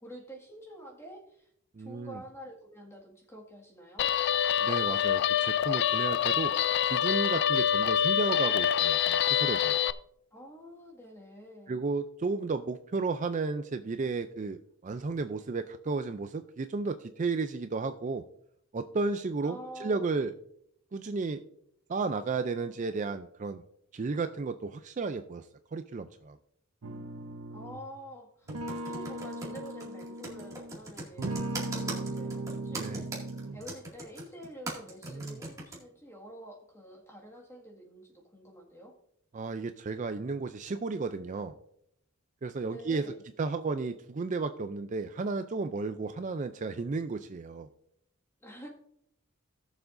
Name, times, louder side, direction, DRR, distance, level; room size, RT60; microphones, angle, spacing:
voice 1, 0.0-1.5 1.8-4.1 10.3-11.8 19.4-20.1 27.5-33.2 33.5-39.0 42.6-43.2 48.4-48.7, equal, 10° left, -1 dB, 1.8 m, -48 dB
voice 2, 1.8-2.2 4.6-6.5 6.9-9.8 11.7-14.6 14.8-18.2 18.7-20.3 20.9-21.4 21.9-23.6 23.9-25.5 25.7-26.4 32.7-33.1 35.1-35.4 39.3-41.6 42.4-43.1 43.4-47.7, right 4 dB, 35° right, 9 dB, 0.4 m, -33 dB
Guitar, 4.0-9.9, left 9 dB, 50° left, 0.3 m, -26 dB
sound 1, 26.8-27.9 28.5-30.7 31.2-33.8, right 2 dB, 75° right, 0.8 m, -38 dB
Computer keyboard, 28.5-35.8, right 2 dB, 15° right, 2.1 m, -40 dB
18.0 x 7.0 x 2.6 m, 0.73 s
head